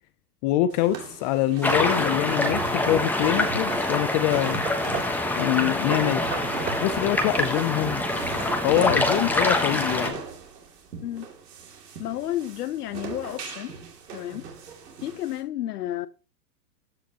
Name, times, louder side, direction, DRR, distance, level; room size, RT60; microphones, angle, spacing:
voice 1, 0.4-4.6 5.3-6.2 6.8-8.0 8.6-10.2, left 14 dB, 30° left, 0.4 m, -24 dB
sound 1, 0.7-15.4, right 5 dB, 80° right, 2.7 m, -37 dB
sound 2, 1.6-10.1, left 2 dB, 5° left, 1.1 m, -25 dB
Hammer / Wood, 3.1-5.3 5.9-9.6, right 4 dB, 20° right, 2.3 m, -39 dB
voice 2, 12.0-13.8 14.1-14.5 15.0-16.1, left 13 dB, 75° left, 1.0 m, -31 dB
14.0 x 5.1 x 2.9 m
hypercardioid pair, 125°, 47 cm